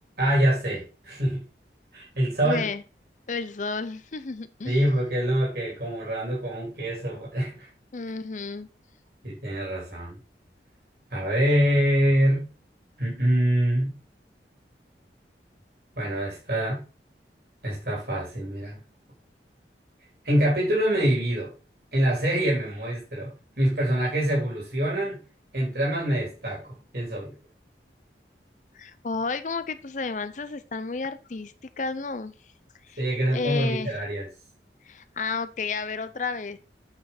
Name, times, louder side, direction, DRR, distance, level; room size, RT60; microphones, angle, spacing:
voice 1, 0.2-1.4 1.9-2.6 4.6-7.7 9.2-10.2 11.1-12.5 13.0-13.9 16.0-16.8 17.6-18.8 20.2-21.5 21.9-23.3 23.6-25.2 25.5-27.3 33.0-34.3, right 1 dB, 60° right, 3.7 m, -25 dB
voice 2, 2.4-2.8 3.3-4.8 7.9-8.7 28.7-32.3 32.9-33.0 33.3-34.0 34.9-36.6, left 4 dB, 45° left, 0.5 m, -32 dB
8.5 x 5.1 x 4.1 m
head